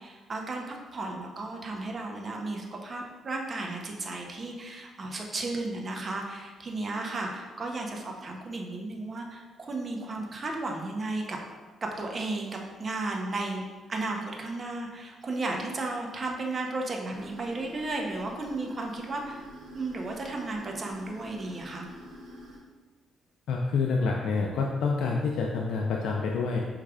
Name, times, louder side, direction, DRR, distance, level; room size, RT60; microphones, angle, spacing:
voice 1, 0.0-11.4 11.8-13.6 13.9-19.4 19.7-21.9, right 2 dB, 40° right, 1 dB, 0.7 m, -34 dB
sound 1, 17.1-22.6, right 1 dB, 85° right, 1.2 m, -46 dB
voice 2, 23.5-26.6, left 4 dB, 80° left, 0 dB, 0.4 m, -27 dB
6.0 x 3.2 x 2.3 m, 1.3 s
cardioid pair, 90°, 0 cm